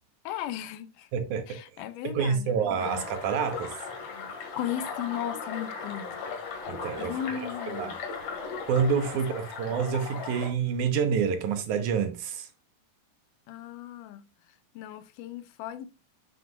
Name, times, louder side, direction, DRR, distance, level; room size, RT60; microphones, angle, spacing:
voice 1, 0.3-1.1 1.5-3.1 4.6-6.1 7.0-8.0 9.7-9.8 13.5-14.3 14.8-15.9, left 11 dB, 85° left, 2.2 m, -36 dB
voice 2, 1.1-1.4 2.0-3.8 6.7-7.2 7.7-7.9 8.7-12.5, right 6 dB, 70° right, 2.3 m, -27 dB
sound 1, 2.8-10.5, left 5 dB, 55° left, 2.8 m, -37 dB
7.7 x 7.7 x 2.3 m
omnidirectional pair, 3.8 m